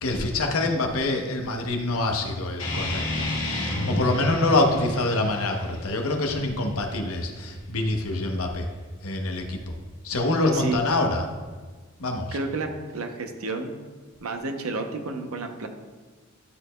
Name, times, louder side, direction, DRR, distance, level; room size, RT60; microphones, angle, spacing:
voice 1, 0.0-3.3 3.5-8.7 9.0-9.7 10.0-11.3 12.0-12.4, left 2 dB, 85° left, 3 dB, 0.9 m, -25 dB
sound 1, 2.6-7.6, left 1 dB, 70° left, 1.8 m, -31 dB
voice 2, 12.3-13.7 14.2-15.7, right 3 dB, 90° right, 5 dB, 0.7 m, -31 dB
11.5 x 4.3 x 2.2 m, 1.4 s
head